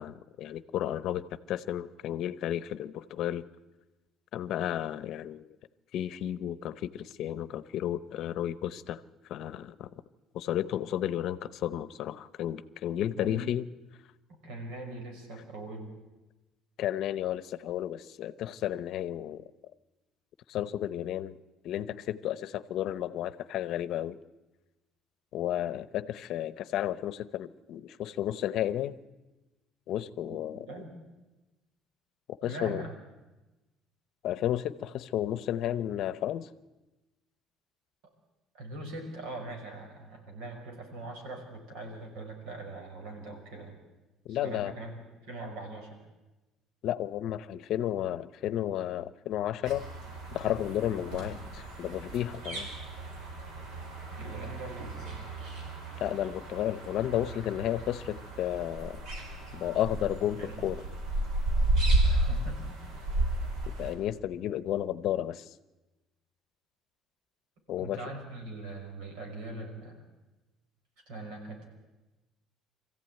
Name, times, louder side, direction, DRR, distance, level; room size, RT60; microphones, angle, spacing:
voice 1, 0.0-3.4 4.3-5.5 5.9-9.0 9.3-9.9 10.3-13.7 16.8-19.4 20.5-21.4 21.6-24.2 25.3-29.0 29.9-30.7 32.3-32.8 34.2-36.5 44.3-44.7 46.8-49.9 50.3-52.7 56.0-59.0 59.5-60.8 63.8-65.5 67.7-68.0, left 11 dB, 55° left, 16 dB, 0.8 m, -32 dB
voice 2, 13.0-13.5 14.4-15.9 30.2-30.4 30.7-30.9 32.4-32.9 38.5-43.8 44.3-46.0 54.1-55.2 60.4-60.7 62.0-62.8 67.8-70.0 71.1-71.7, right 2 dB, 85° right, 3 dB, 5.7 m, -42 dB
sound 1, 49.7-63.9, right 1 dB, 65° right, 4.6 m, -33 dB
24.0 x 15.0 x 9.2 m, 1.1 s
cardioid pair, 175°, 0 cm